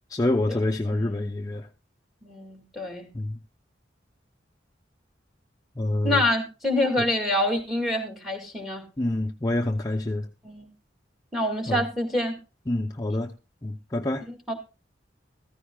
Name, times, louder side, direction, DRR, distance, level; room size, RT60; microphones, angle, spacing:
voice 1, 0.1-1.7 3.1-3.4 5.8-6.2 7.0-7.1 9.0-10.3 11.7-11.8 12.7-13.3 13.6-14.2, left 1 dB, 20° left, 0.6 m, -27 dB
voice 2, 0.9-1.3 2.2-3.1 6.0-8.8 10.4-10.7 11.3-12.3 14.3-14.5, left 1 dB, ahead, 2.1 m, -26 dB
14.5 x 14.0 x 2.3 m
head